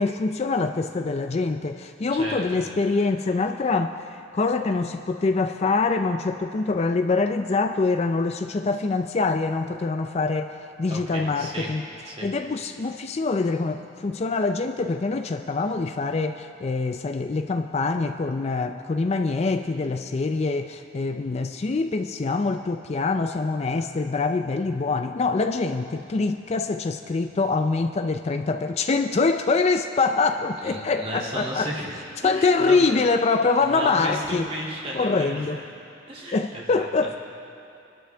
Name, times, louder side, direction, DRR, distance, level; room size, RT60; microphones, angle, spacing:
voice 1, 0.0-10.5 10.8-11.8 12.2-31.7 32.2-34.5 34.9-35.6 36.3-37.2, left 3 dB, 35° left, 7 dB, 0.4 m, -24 dB
voice 2, 2.1-2.6 10.9-11.7 12.0-12.3 24.6-24.7 30.6-31.9 32.2-32.8 33.6-35.5 36.1-36.9, right 1 dB, 30° right, -4 dB, 2.5 m, -34 dB
24.0 x 12.5 x 3.4 m, 2.6 s
head